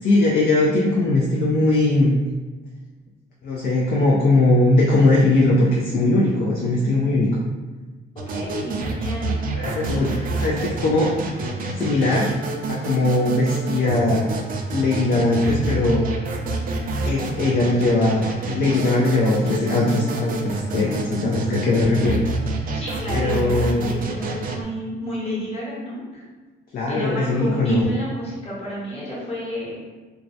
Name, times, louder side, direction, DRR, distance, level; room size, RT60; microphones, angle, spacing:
voice 1, 0.0-2.1 3.4-7.5 9.6-10.1 10.4-11.1 11.6-12.3 12.7-14.3 14.7-16.0 17.1-18.2 18.4-22.2 23.1-23.9 26.7-27.8, left 2 dB, 50° left, -3 dB, 0.4 m, -20 dB
sound 1, 8.2-24.6, right 3 dB, 45° right, 0.4 m, -28 dB
voice 2, 8.3-9.3 9.8-10.2 16.4-17.0 22.7-26.2 26.9-29.8, equal, 30° left, -8 dB, 1.2 m, -31 dB
2.3 x 2.0 x 2.6 m, 1.3 s
cardioid pair, 90°, 20 cm